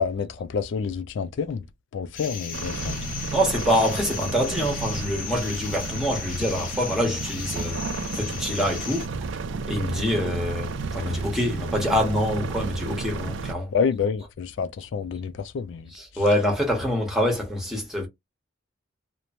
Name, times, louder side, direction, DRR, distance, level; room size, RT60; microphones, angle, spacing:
voice 1, 0.0-1.6 1.9-3.1 13.7-15.9, left 6 dB, 70° left, 0.3 m, -28 dB
sound 1, 2.1-9.1, left 6 dB, 45° left, 0.7 m, -36 dB
sound 2, 2.5-13.5, right 4 dB, 75° right, 0.4 m, -33 dB
voice 2, 3.3-7.8 8.1-9.1 9.7-13.7 15.9-18.1, equal, ahead, 1.1 m, -25 dB
3.0 x 2.1 x 2.5 m
head